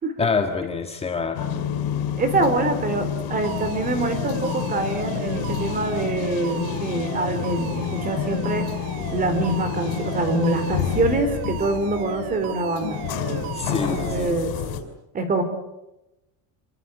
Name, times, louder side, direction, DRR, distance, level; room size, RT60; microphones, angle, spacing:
voice 1, 0.2-1.5 13.5-14.3, left 5 dB, 15° left, 4 dB, 1.7 m, -26 dB
sound 1, 1.3-14.8, left 8 dB, 75° left, 5.6 m, -29 dB
voice 2, 2.2-8.7 9.1-13.0 13.7-14.6 15.1-15.4, right 2 dB, 20° right, 10 dB, 3.7 m, -25 dB
Alarm, 3.4-14.3, right 8 dB, 75° right, 4.1 m, -36 dB
28.0 x 24.5 x 8.3 m, 0.93 s
cardioid pair, 180°, 39 cm